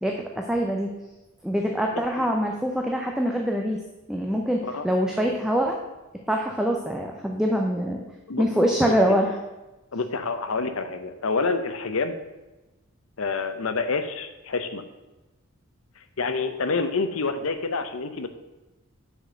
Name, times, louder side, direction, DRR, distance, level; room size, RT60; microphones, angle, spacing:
voice 1, 0.0-0.9 1.4-3.8 4.1-5.8 6.3-8.0 8.4-9.4, equal, 5° right, 0 dB, 0.6 m, -24 dB
voice 2, 8.3-9.2 9.9-12.2 13.2-14.8 16.2-18.3, left 4 dB, 75° left, 9 dB, 0.7 m, -28 dB
6.4 x 5.1 x 6.5 m, 1.1 s
head